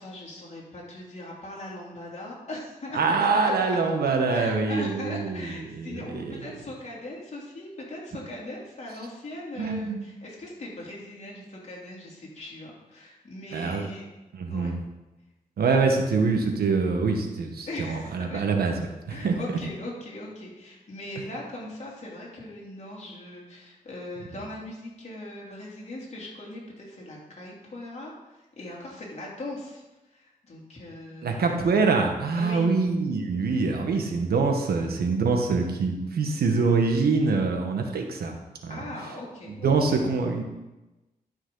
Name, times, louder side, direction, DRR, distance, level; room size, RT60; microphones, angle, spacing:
voice 1, 0.0-3.0 3.3-3.8 4.0-14.1 14.5-14.8 17.6-18.4 19.1-31.4 32.3-32.7 38.7-40.1, left 1 dB, 45° left, -4 dB, 3.1 m, -40 dB
voice 2, 2.9-5.5 5.8-6.5 9.6-10.0 13.5-13.9 14.4-14.7 15.6-18.7 19.1-19.4 31.2-38.3 38.6-38.8 39.6-40.4, right 4 dB, 85° right, 3 dB, 1.4 m, -24 dB
12.0 x 6.2 x 3.9 m, 1.0 s
wide cardioid pair, 100°, 16 cm